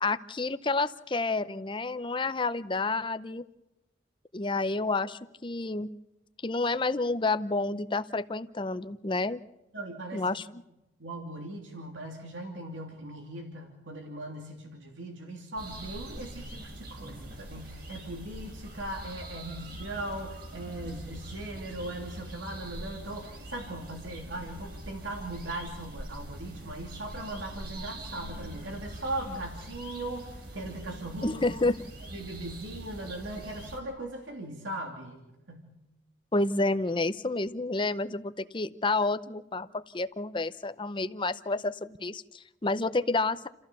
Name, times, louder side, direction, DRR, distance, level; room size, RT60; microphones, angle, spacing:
voice 1, 0.0-3.4 4.3-5.9 6.4-9.4 10.1-10.4 31.2-31.8 36.3-43.5, left 3 dB, 25° left, 13 dB, 0.6 m, -29 dB
voice 2, 9.7-10.4 11.0-31.6 32.0-35.2 35.5-35.7, right 1 dB, 90° right, 2 dB, 3.0 m, -39 dB
sound 1, 15.6-33.8, right 1 dB, 50° right, 3.7 m, -43 dB
29.0 x 15.0 x 6.9 m, 0.95 s
head